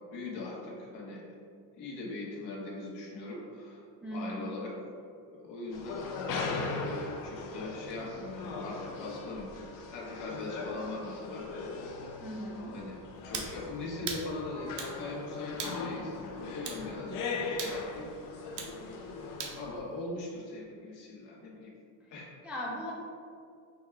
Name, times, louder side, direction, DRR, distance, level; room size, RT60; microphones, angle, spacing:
voice 1, 0.1-1.2 1.8-3.8 4.1-4.7 5.3-6.0 6.4-11.5 11.7-11.9 12.7-13.0 13.2-17.2 17.5-18.1 19.5-21.7 22.1-22.3, left 2 dB, 75° left, -3 dB, 1.3 m, -40 dB
voice 2, 4.0-4.4 12.2-12.8 22.4-22.9, equal, 5° right, -5 dB, 0.4 m, -38 dB
sound 1, 5.7-19.8, left 3 dB, 50° left, 0.5 m, -39 dB
sound 2, 13.3-13.5 14.1-14.3 14.8-15.0 15.6-15.8 16.7-16.8 17.6-17.8 18.6-18.8 19.4-19.6, right 6 dB, 75° right, 0.7 m, -37 dB
6.2 x 2.4 x 3.2 m, 2.3 s
cardioid pair, 155°, 42 cm